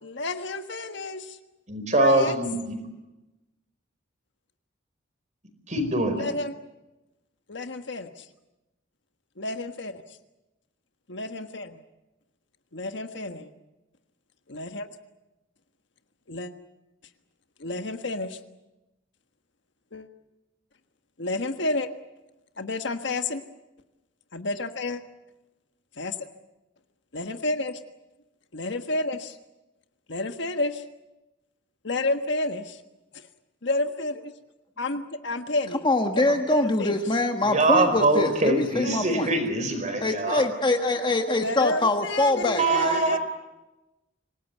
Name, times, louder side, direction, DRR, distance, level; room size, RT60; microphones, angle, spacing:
voice 1, 0.0-1.4 1.9-2.3 6.2-6.5 7.5-8.1 9.4-10.0 11.1-11.8 12.7-13.5 14.5-14.9 16.3-16.5 17.6-18.4 19.9-20.1 21.2-21.9 22.6-23.4 24.3-25.0 26.0-26.1 27.1-27.8 28.5-29.3 30.1-30.8 31.8-32.8 33.6-34.1 34.8-35.8 36.2-37.0 38.8-39.0 41.4-43.2, left 2 dB, 65° left, 8 dB, 1.5 m, -30 dB
voice 2, 1.7-2.8 5.7-6.3 37.5-40.4 42.6-43.2, right 2 dB, 40° right, 7 dB, 4.7 m, -23 dB
voice 3, 35.8-39.3 40.0-43.0, left 2 dB, 25° left, 5 dB, 1.5 m, -24 dB
26.5 x 18.5 x 9.4 m, 1.0 s
head